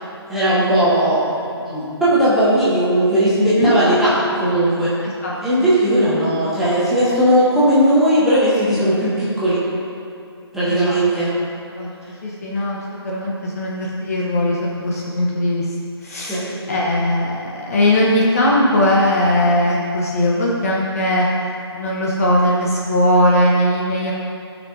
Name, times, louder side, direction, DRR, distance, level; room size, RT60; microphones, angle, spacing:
voice 1, 0.3-1.2 1.6-4.9 5.4-9.6 10.5-11.3 16.3-16.4, right 1 dB, ahead, -12 dB, 1.5 m, -17 dB
voice 2, 3.4-3.7 5.0-5.7 10.7-11.0 11.8-11.9 12.2-15.7 16.0-21.3 21.7-24.1, left 1 dB, 35° left, -4 dB, 1.0 m, -19 dB
15.0 x 6.0 x 2.8 m, 2.5 s
figure-of-eight pair, 145°, 14 cm